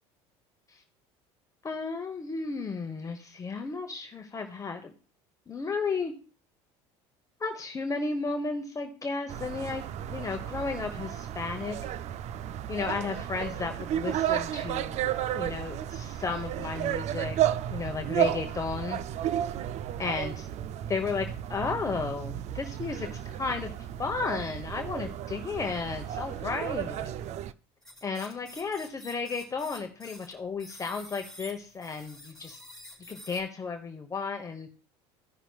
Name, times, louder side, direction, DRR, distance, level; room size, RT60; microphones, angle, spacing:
voice 1, 1.6-4.9 5.5-6.1 7.4-11.8 12.7-17.4 17.7-19.0 20.0-20.5 20.9-23.7 24.0-27.1 28.0-32.6 33.1-34.7, left 4 dB, 25° left, 4 dB, 1.0 m, -33 dB
sound 1, 9.3-27.5, right 11 dB, 50° right, 0.5 m, -33 dB
sound 2, 27.8-30.3 30.6-33.4, left 1 dB, 5° left, 4.1 m, -48 dB
16.0 x 5.8 x 2.4 m, 0.38 s
supercardioid pair, 90°, 14 cm